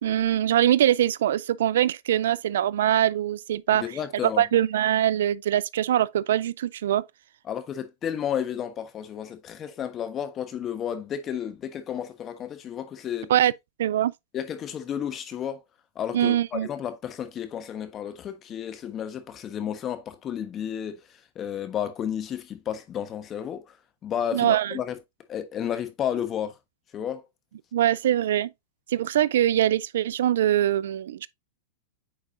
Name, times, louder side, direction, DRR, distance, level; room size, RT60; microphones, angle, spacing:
voice 1, 0.0-3.8 4.4-7.0 13.3-13.5 13.8-14.1 16.1-16.7 24.3-24.8 27.7-28.5 28.9-31.3, right 11 dB, 70° right, 0.4 m, -23 dB
voice 2, 3.7-4.4 7.4-13.3 14.3-15.6 15.9-23.8 24.0-25.0 25.3-26.6 26.9-27.2, left 9 dB, 30° left, 1.2 m, -32 dB
8.7 x 4.8 x 2.6 m
hypercardioid pair, 115°, 0 cm